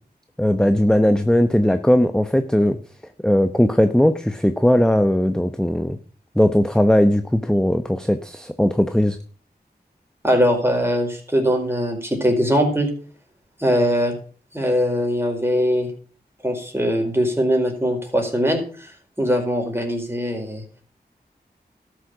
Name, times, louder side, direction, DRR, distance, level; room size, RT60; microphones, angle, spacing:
voice 1, 0.4-2.8 3.2-6.0 6.3-9.2, equal, 5° left, 9 dB, 0.9 m, -18 dB
voice 2, 10.2-12.9 13.6-14.2 14.5-15.9 16.4-18.9 19.2-20.6, equal, 15° right, 2 dB, 4.6 m, -21 dB
12.5 x 6.7 x 6.1 m, 0.42 s
cardioid pair, 40°, 17 cm